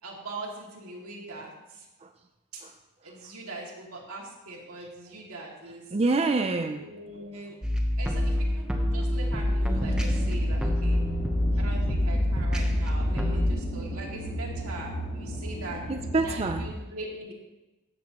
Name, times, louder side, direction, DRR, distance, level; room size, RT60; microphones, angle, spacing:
voice 1, 0.0-1.9 2.5-2.6 3.0-5.8 6.7-7.6 8.0-11.0 11.6-15.8 16.2-17.3, right 2 dB, 90° right, -2 dB, 2.4 m, -41 dB
voice 2, 5.9-6.8 13.3-13.4 15.9-16.7, right 3 dB, 30° right, 6 dB, 0.4 m, -26 dB
sound 1, 7.6-13.5, left 1 dB, 5° right, 0.9 m, -26 dB
sound 2, 9.7-16.7, right 1 dB, 65° left, 2.0 m, -34 dB
13.5 x 7.8 x 3.0 m, 1.0 s
head